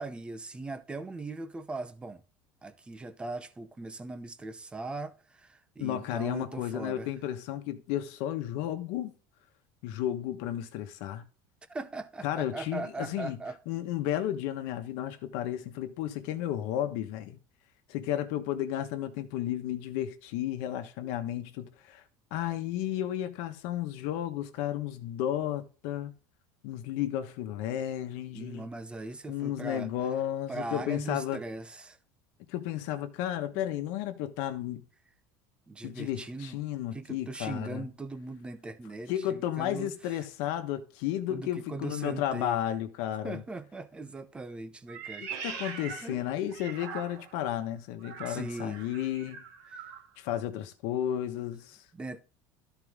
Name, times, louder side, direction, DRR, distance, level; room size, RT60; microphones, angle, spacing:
voice 1, 0.0-2.2 2.6-7.1 11.7-13.6 21.0-21.2 27.7-27.8 28.3-29.9 30.5-32.0 33.5-33.7 35.7-36.6 36.9-40.2 41.3-42.6 43.2-45.6 46.0-46.2 48.3-48.8 49.7-49.8 51.9-52.2, right 3 dB, 10° right, 0.7 m, -40 dB
voice 2, 5.8-9.1 9.8-11.2 12.2-13.4 13.7-17.4 17.9-22.0 22.3-26.1 26.6-28.7 29.3-31.4 32.5-34.8 35.8-37.9 39.1-43.4 45.2-49.4 50.2-51.8, left 11 dB, 65° left, 1.3 m, -33 dB
Meow, 44.9-47.4 48.0-50.1, right 6 dB, 75° right, 2.1 m, -42 dB
13.0 x 4.7 x 3.6 m
cardioid pair, 155°, 10 cm